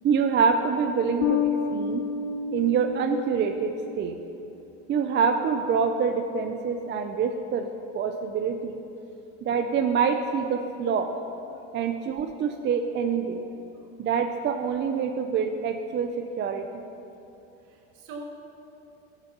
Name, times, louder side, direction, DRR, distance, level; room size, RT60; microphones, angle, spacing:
voice 1, 0.0-2.0 2.5-4.2 4.9-7.7 7.9-8.8 9.4-11.1 11.7-13.4 14.0-16.7, right 6 dB, 30° right, 6 dB, 0.5 m, -26 dB
Bass guitar, 1.2-3.9, left 6 dB, 45° left, 0.6 m, -29 dB
voice 2, 17.6-18.2, right 3 dB, 65° right, 1 dB, 1.8 m, -44 dB
13.5 x 6.8 x 5.6 m, 2.9 s
supercardioid pair, 115°, 37 cm